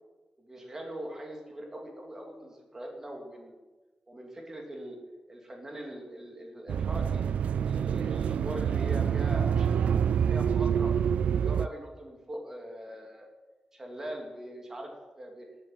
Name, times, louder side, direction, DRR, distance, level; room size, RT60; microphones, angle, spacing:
voice 1, 0.4-3.5 4.1-5.0 5.3-7.2 7.6-9.9 10.3-10.9 11.3-13.3 13.7-15.5, right 1 dB, 20° right, 1 dB, 3.2 m, -41 dB
sound 1, 6.7-11.7, right 8 dB, 80° right, 0.4 m, -27 dB
14.5 x 8.9 x 9.0 m, 1.2 s
wide cardioid pair, 175°, 2 cm